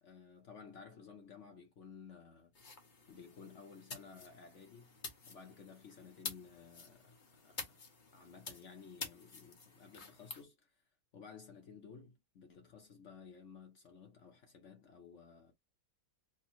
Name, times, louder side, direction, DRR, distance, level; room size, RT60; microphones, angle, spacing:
voice 1, 0.0-2.5 3.1-5.0 5.3-7.8 8.1-10.8 11.1-15.5, left 6 dB, 60° left, 1.2 m, -55 dB
sound 1, 2.5-10.4, left 4 dB, 35° left, 1.0 m, -49 dB
3.8 x 2.1 x 4.2 m
omnidirectional pair, 1.5 m